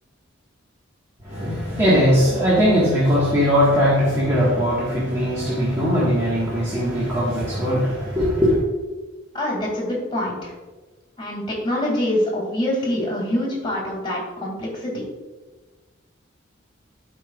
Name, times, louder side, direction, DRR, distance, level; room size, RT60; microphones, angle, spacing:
voice 1, 1.2-8.6, equal, 15° right, -9 dB, 1.5 m, -19 dB
voice 2, 9.3-10.5 11.2-15.0, left 1 dB, 25° left, -3 dB, 2.3 m, -25 dB
11.5 x 5.3 x 2.4 m, 1.2 s
head